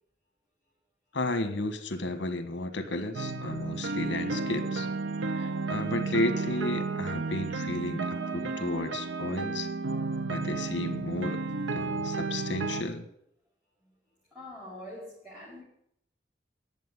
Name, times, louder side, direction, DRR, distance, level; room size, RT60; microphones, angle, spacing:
voice 1, 1.1-4.9 5.3-9.7 10.3-11.4 11.7-13.1, left 2 dB, 80° left, 9 dB, 1.5 m, -33 dB
sound 1, 3.1-12.8, right 3 dB, 90° right, 0.7 m, -32 dB
voice 2, 13.8-15.6, left 1 dB, 10° right, -8 dB, 5.4 m, -46 dB
10.5 x 7.6 x 9.6 m, 0.71 s
head